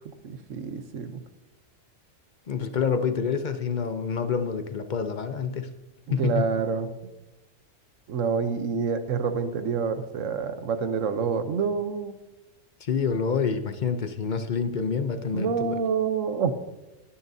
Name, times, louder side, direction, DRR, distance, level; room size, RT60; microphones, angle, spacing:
voice 1, 0.2-1.2 6.2-6.9 8.1-12.2 15.3-16.5, right 6 dB, 75° right, 9 dB, 1.2 m, -27 dB
voice 2, 2.5-5.7 6.1-6.4 12.8-15.8, left 6 dB, 45° left, 9 dB, 0.7 m, -27 dB
20.5 x 9.9 x 2.7 m, 1.0 s
omnidirectional pair, 1.3 m